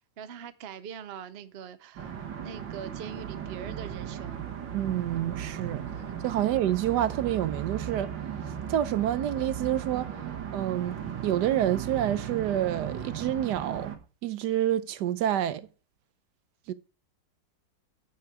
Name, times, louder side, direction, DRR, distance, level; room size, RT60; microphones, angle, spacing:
voice 1, 0.2-2.1 2.4-4.4, right 7 dB, 60° right, 0.6 m, -42 dB
sound 1, 2.0-14.0, right 9 dB, 90° right, 2.1 m, -36 dB
voice 2, 4.7-5.9 6.2-8.1 8.7-10.2 10.5-11.0 11.2-13.9 14.2-15.7 16.7-16.8, right 11 dB, 75° right, 1.2 m, -28 dB
9.4 x 6.7 x 4.7 m
omnidirectional pair, 2.0 m